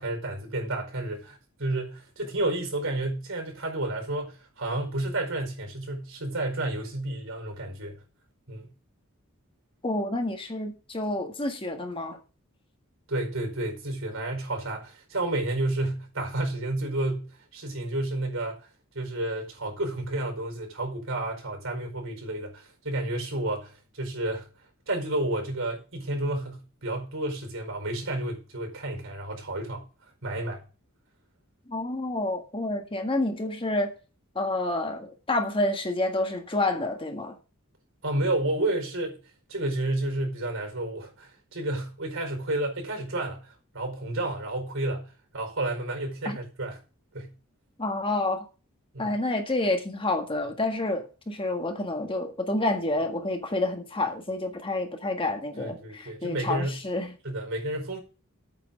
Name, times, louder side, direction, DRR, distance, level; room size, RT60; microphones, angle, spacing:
voice 1, 0.0-8.0 8.5-8.7 13.1-18.7 18.9-24.5 24.9-29.9 30.2-30.6 38.0-39.2 39.5-46.8 47.1-47.3 48.9-49.2 55.6-56.8 57.2-58.0, right 2 dB, 65° right, 4.8 m, -31 dB
voice 2, 9.8-12.2 31.7-33.9 34.3-37.4 46.2-46.4 47.8-48.4 49.0-57.1, left 2 dB, 25° left, 1.6 m, -29 dB
8.7 x 6.4 x 7.5 m
head